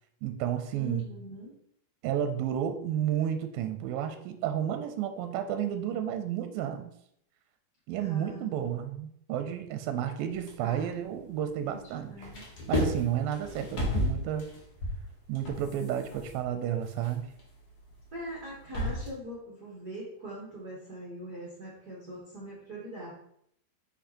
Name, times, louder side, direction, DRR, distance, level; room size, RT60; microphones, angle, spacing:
voice 1, 0.2-1.1 2.0-6.9 7.9-12.3 12.7-14.5 15.3-17.3, right 10 dB, 80° right, 8 dB, 2.3 m, -31 dB
voice 2, 0.7-1.5 7.9-8.5 10.6-10.9 11.7-12.4 18.1-23.1, equal, 60° right, -6 dB, 1.0 m, -42 dB
sound 1, 10.3-11.8 12.1-19.1, left 1 dB, 65° left, 0.9 m, -34 dB
5.8 x 5.6 x 4.2 m, 0.71 s
omnidirectional pair, 4.4 m